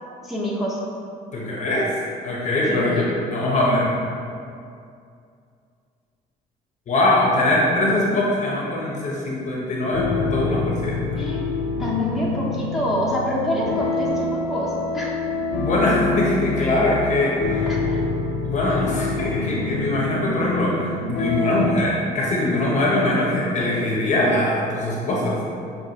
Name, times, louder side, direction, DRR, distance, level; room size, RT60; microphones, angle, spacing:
voice 1, 0.2-0.8 2.6-3.2 11.1-11.4 11.8-14.7 14.9-15.1 17.7-18.0, left 1 dB, ahead, -6 dB, 0.6 m, -26 dB
voice 2, 1.3-1.9 2.2-4.0 6.9-11.0 15.6-17.7 18.4-25.4, left 1 dB, 45° left, -4 dB, 0.7 m, -22 dB
sound 1, 9.9-21.7, left 3 dB, 85° left, 0.5 m, -26 dB
6.4 x 2.3 x 2.8 m, 2.4 s
cardioid pair, 110°, 17 cm